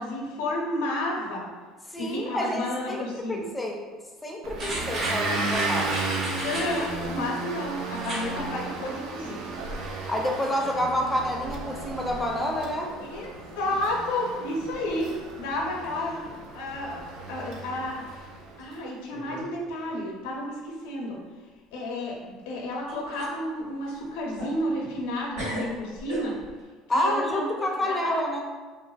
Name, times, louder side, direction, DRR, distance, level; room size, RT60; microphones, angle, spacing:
voice 1, 0.0-1.5 1.9-3.5 6.4-9.4 13.0-16.2 16.5-18.3 18.6-21.2 21.7-26.4 26.9-28.0, left 1 dB, 90° left, -2 dB, 0.6 m, -31 dB
voice 2, 1.9-3.8 4.2-6.0 10.1-12.9 26.9-28.4, left 1 dB, 10° left, 0 dB, 0.4 m, -28 dB
Motor vehicle (road) / Engine, 4.4-18.7, right 3 dB, 65° right, 0.3 m, -34 dB
sound 1, 4.6-6.9 7.9-8.3 8.7-8.8, right 1 dB, 40° right, 0.8 m, -33 dB
sound 2, 14.7-15.6 15.9-16.4 16.8-16.9 17.8-17.9 18.6-18.7 19.1-19.5 19.8-19.9 22.4-22.5 22.9-23.4 23.8-25.1 25.3-26.6, right 1 dB, 85° right, 1.5 m, -39 dB
2.5 x 2.4 x 2.3 m, 1.4 s
cardioid pair, 125°, 0 cm